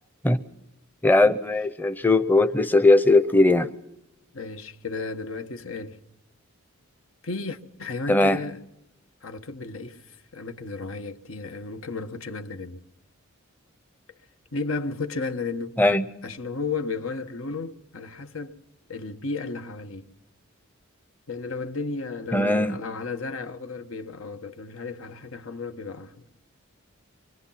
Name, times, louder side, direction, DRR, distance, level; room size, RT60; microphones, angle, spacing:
voice 1, 1.0-3.7 8.1-8.4 15.8-16.1 22.3-22.8, left 2 dB, 10° left, 0.7 m, -19 dB
voice 2, 4.3-6.0 7.2-8.6 9.2-12.8 14.5-15.8 16.2-18.6 18.9-20.1 21.3-26.1, left 3 dB, 80° left, 1.5 m, -33 dB
24.5 x 24.5 x 5.9 m
head